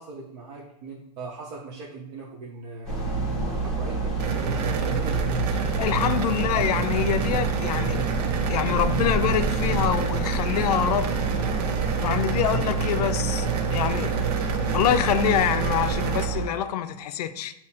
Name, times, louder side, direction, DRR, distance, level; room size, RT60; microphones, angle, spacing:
voice 1, 0.0-5.2, right 4 dB, 40° right, 0.7 m, -40 dB
sound 1, 2.8-16.5, right 4 dB, 5° left, 1.0 m, -28 dB
sound 2, 4.2-16.3, right 6 dB, 80° right, 0.6 m, -29 dB
voice 2, 5.8-8.0 8.5-11.2 12.0-13.5 13.7-14.1 14.7-17.5, left 10 dB, 80° left, 0.4 m, -25 dB
6.8 x 2.8 x 2.7 m
supercardioid pair, 170°, 20 cm